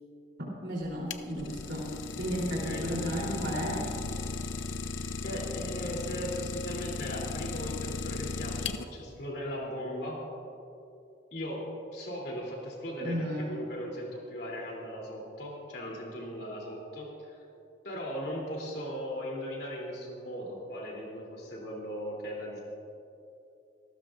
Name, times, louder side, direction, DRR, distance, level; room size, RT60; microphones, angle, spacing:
voice 1, 0.6-1.9 2.2-3.9 13.0-13.5, equal, 70° right, -6 dB, 3.5 m, -33 dB
Idling, 0.8-9.2, left 4 dB, 85° left, 0.6 m, -36 dB
voice 2, 2.4-3.0 5.2-10.2 11.3-11.7 11.9-17.4 17.8-22.6, equal, 60° left, -3 dB, 3.3 m, -38 dB
27.0 x 13.5 x 2.6 m, 2.7 s
head